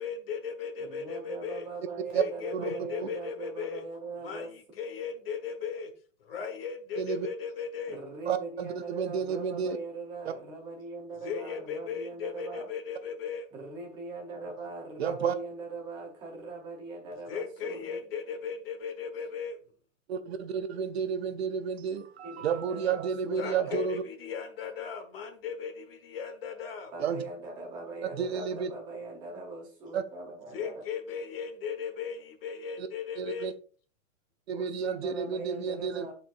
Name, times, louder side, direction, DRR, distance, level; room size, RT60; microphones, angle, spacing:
voice 1, 0.0-1.7 2.1-3.8 4.2-5.9 6.2-8.0 11.2-13.5 17.3-19.6 23.4-26.9 30.5-33.5, left 6 dB, 45° left, 7 dB, 1.3 m, -37 dB
voice 2, 0.8-4.5 7.9-12.7 13.5-18.0 22.2-23.9 26.9-30.8 34.5-36.1, right 3 dB, 10° right, 0 dB, 0.9 m, -41 dB
voice 3, 7.0-7.3 8.3-9.8 10.3-10.4 15.0-15.3 20.1-24.0 27.0-27.2 28.2-28.7 29.9-30.0 32.8-32.9 33.2-33.5 34.5-36.1, right 7 dB, 55° right, 9 dB, 0.7 m, -31 dB
11.5 x 4.5 x 2.5 m, 0.40 s
supercardioid pair, 180°, 39 cm